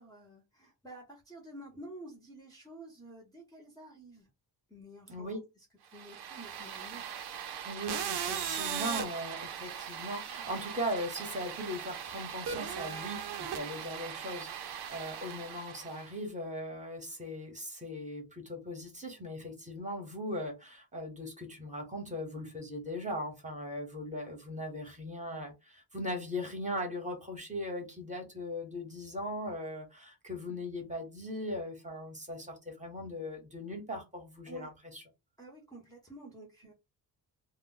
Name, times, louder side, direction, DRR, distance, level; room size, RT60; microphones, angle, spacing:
voice 1, 0.0-4.3 4.7-5.4 5.8-7.0 7.4-7.6 34.5-34.7 35.4-36.7, right 1 dB, 10° left, 0.7 m, -50 dB
voice 2, 5.1-5.4 7.6-35.0, left 1 dB, 20° right, 0.9 m, -39 dB
sound 1, 5.9-16.1, right 8 dB, 70° right, 0.6 m, -39 dB
2.2 x 2.0 x 3.8 m
wide cardioid pair, 140°, 41 cm